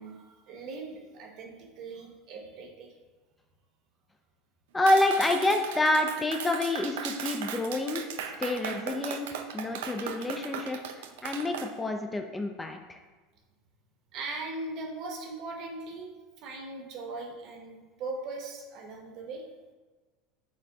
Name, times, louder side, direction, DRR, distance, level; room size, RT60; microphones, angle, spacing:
voice 1, 0.0-2.9 14.1-19.4, right 3 dB, 55° right, 2 dB, 0.8 m, -40 dB
voice 2, 4.7-8.0 8.4-9.3 9.5-10.8 11.2-13.0, left 2 dB, 15° left, 5 dB, 0.3 m, -27 dB
Clapping, 4.9-11.7, right 7 dB, 85° right, 0.3 m, -38 dB
5.1 x 3.3 x 2.7 m, 1.3 s
supercardioid pair, 120°, 0 cm